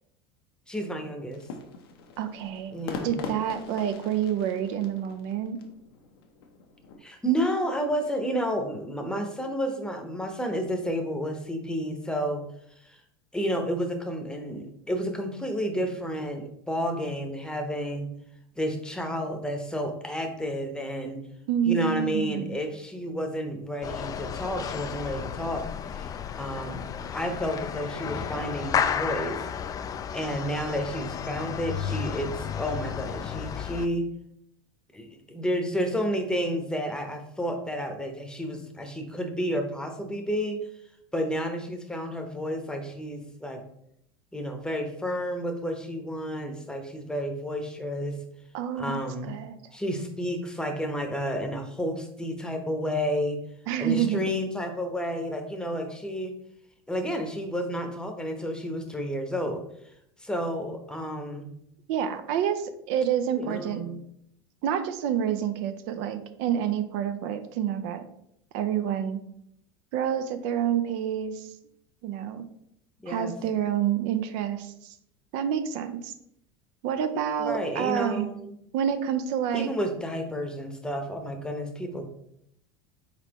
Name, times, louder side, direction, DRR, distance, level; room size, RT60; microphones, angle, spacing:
voice 1, 0.7-1.4 2.7-3.3 7.0-12.4 12.8-13.0 13.3-18.1 18.6-21.2 21.7-25.7 25.9-29.4 30.1-34.1 34.9-40.6 41.1-43.6 44.3-48.2 48.8-49.3 49.7-53.4 53.8-56.3 56.9-59.6 60.2-61.5 63.4-64.0 73.0-73.3 77.4-78.5 79.5-82.0, equal, 5° left, 5 dB, 0.9 m, -31 dB
sound 1, 1.3-7.0, left 4 dB, 75° left, 0.7 m, -42 dB
voice 2, 2.2-2.7 3.0-5.6 21.5-22.6 48.5-49.0 49.3-49.6 53.7-54.2 61.9-63.8 64.6-68.0 68.5-69.2 69.9-71.5 72.0-72.5 73.1-74.9 75.3-76.1 76.8-78.3 78.7-79.7, right 9 dB, 60° right, 9 dB, 0.5 m, -28 dB
sound 2, 23.8-33.9, left 8 dB, 30° left, 0.3 m, -32 dB
4.3 x 4.1 x 2.9 m, 0.74 s
hypercardioid pair, 85°, 13 cm